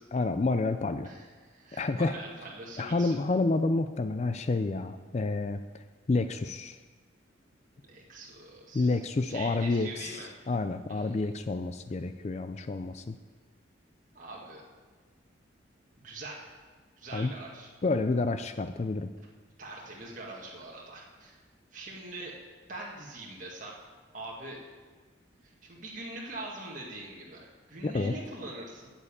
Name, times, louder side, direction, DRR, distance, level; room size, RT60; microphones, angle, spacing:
voice 1, 0.1-1.1 1.7-2.2 2.8-5.6 6.1-6.8 8.7-13.2 17.1-17.3 17.8-19.1 27.8-28.1, left 3 dB, 35° left, 10 dB, 0.4 m, -29 dB
voice 2, 1.0-3.2 7.8-10.3 10.9-11.2 14.1-14.6 16.0-16.5 17.0-17.7 19.6-21.4 21.7-22.4 22.7-23.8 24.1-24.6 25.4-28.9, right 2 dB, 40° right, -3 dB, 1.7 m, -43 dB
9.7 x 7.2 x 8.5 m, 1.4 s
head